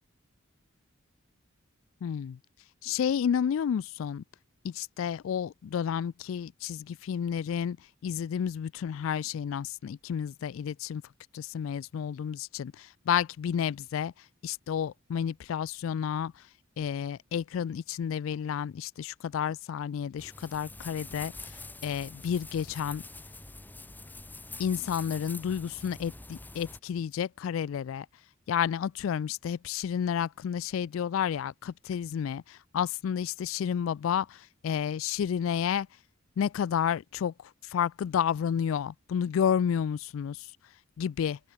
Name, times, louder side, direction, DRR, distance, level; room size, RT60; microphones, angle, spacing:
voice 1, 2.0-2.4 2.8-4.2 4.6-7.8 8.0-11.0 11.3-14.1 14.4-16.3 16.8-21.3 21.8-23.0 24.6-28.1 28.5-35.9 36.4-37.3 37.7-40.4 41.0-41.4, left 8 dB, 70° left, 0.3 m, -31 dB
sound 1, 20.2-26.8, left 2 dB, 10° left, 0.9 m, -45 dB
head